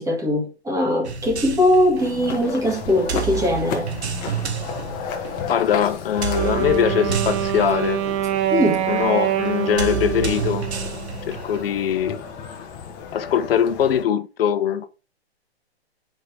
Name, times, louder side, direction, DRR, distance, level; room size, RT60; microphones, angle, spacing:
voice 1, 0.0-3.9 8.5-8.9, left 1 dB, 10° right, 2.1 m, -20 dB
sound 1, 1.0-11.9, right 7 dB, 75° right, 1.6 m, -31 dB
sound 2, 2.0-14.0, left 6 dB, 25° left, 1.3 m, -34 dB
voice 2, 5.5-8.0 8.9-10.7 11.3-12.2 13.1-14.9, left 9 dB, 60° left, 1.1 m, -21 dB
Wind instrument woodwind instrument, 6.3-11.4, right 11 dB, 30° right, 0.9 m, -25 dB
7.6 x 5.2 x 3.4 m
hypercardioid pair, 135°, 33 cm